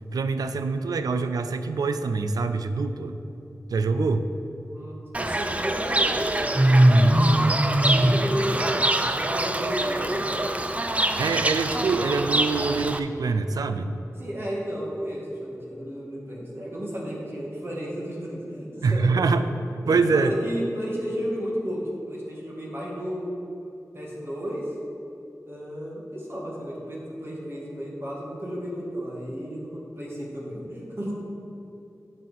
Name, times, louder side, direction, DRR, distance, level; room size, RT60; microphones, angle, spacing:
voice 1, 0.1-3.1 3.7-4.3 11.2-14.0 18.8-19.5 19.9-20.3, right 4 dB, 90° right, 10 dB, 0.4 m, -24 dB
voice 2, 4.7-8.7 9.1-10.5 14.2-19.5 19.8-23.3 23.9-24.7 25.5-31.1, equal, 40° right, -5 dB, 2.0 m, -33 dB
Fowl / Bird, 5.1-13.0, right 1 dB, 20° right, 0.4 m, -22 dB
8.8 x 6.3 x 4.2 m, 2.9 s
cardioid pair, 55°, 6 cm